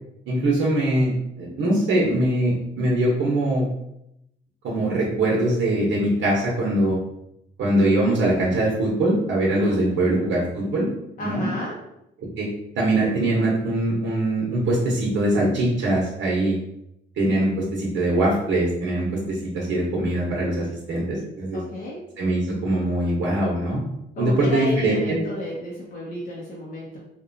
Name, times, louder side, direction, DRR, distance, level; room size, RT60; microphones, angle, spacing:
voice 1, 0.3-1.1 1.4-3.6 4.6-7.0 7.6-10.9 11.2-11.5 12.4-12.5 12.8-16.6 17.2-21.6 22.2-23.8 24.2-25.2, right 1 dB, 70° right, -4 dB, 0.8 m, -22 dB
voice 2, 9.5-10.5 11.2-11.8 21.5-22.1 24.2-27.0, left 1 dB, 45° left, -4 dB, 0.7 m, -32 dB
2.8 x 2.2 x 2.6 m, 0.81 s
cardioid pair, 90°, 20 cm